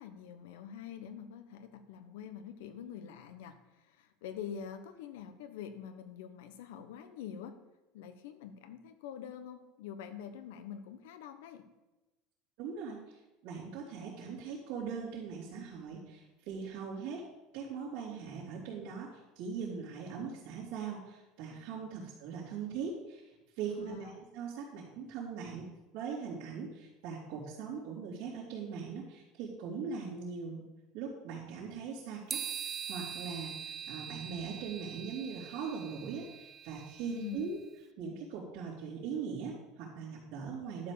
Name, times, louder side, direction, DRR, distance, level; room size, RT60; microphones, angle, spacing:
voice 1, 0.0-7.6 7.9-11.7 23.7-24.2 37.1-37.5, left 8 dB, 85° left, 10 dB, 1.2 m, -45 dB
voice 2, 12.6-17.2 17.5-30.6 30.9-37.6 38.0-40.9, right 6 dB, 60° right, -8 dB, 3.2 m, -41 dB
sound 1, 32.3-37.6, right 8 dB, 20° right, 0.4 m, -43 dB
11.5 x 5.6 x 6.9 m, 1.0 s
cardioid pair, 155°, 0 cm